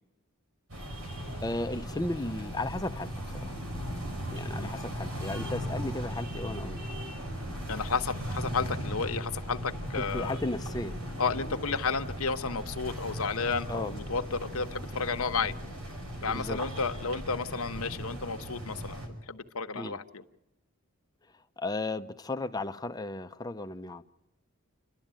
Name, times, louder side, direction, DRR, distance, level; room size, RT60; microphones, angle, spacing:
sound 1, 0.7-19.1, equal, 75° right, 5.7 m, -37 dB
voice 1, 1.4-3.6 4.3-6.8 10.0-11.0 13.7-13.9 16.3-16.6 19.7-20.0 21.3-24.0, left 2 dB, 15° left, 0.7 m, -35 dB
voice 2, 7.7-10.4 11.2-15.5 16.2-20.2, left 4 dB, 80° left, 1.2 m, -32 dB
30.0 x 12.5 x 9.0 m
head